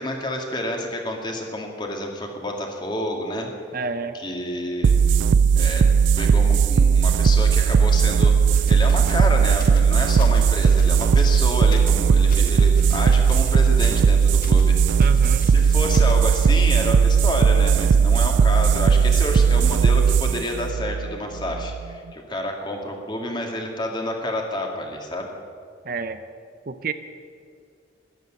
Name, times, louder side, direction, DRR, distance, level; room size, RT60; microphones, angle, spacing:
voice 1, 0.0-3.5 4.1-5.0 5.5-5.9 6.2-14.8 15.5-25.3, left 1 dB, 25° left, 2 dB, 2.1 m, -29 dB
voice 2, 3.7-4.2 15.0-15.5 25.8-26.2 26.7-26.9, right 4 dB, 55° right, 10 dB, 0.7 m, -29 dB
sound 1, 4.8-21.9, right 6 dB, 85° right, 0.4 m, -17 dB
sound 2, 8.3-16.3, left 2 dB, 50° left, 1.6 m, -41 dB
13.5 x 11.0 x 9.0 m, 2.2 s
head